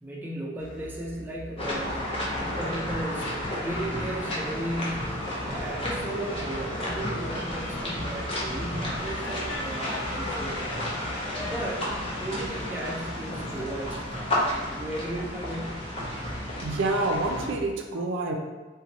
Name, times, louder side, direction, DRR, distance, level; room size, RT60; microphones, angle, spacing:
voice 1, 0.0-2.1 2.4-5.2 5.5-10.6 11.5-11.9 12.2-14.3 14.8-15.9, right 1 dB, 10° right, -3 dB, 0.5 m, -35 dB
sound 1, 0.6-17.7, equal, 5° left, 1.1 m, -45 dB
sound 2, 1.6-17.5, left 1 dB, 30° left, 0.7 m, -32 dB
sound 3, 4.6-13.7, left 2 dB, 85° left, 0.5 m, -45 dB
voice 2, 16.6-18.3, right 2 dB, 80° right, 3 dB, 0.4 m, -27 dB
2.8 x 2.1 x 4.0 m, 1.3 s
head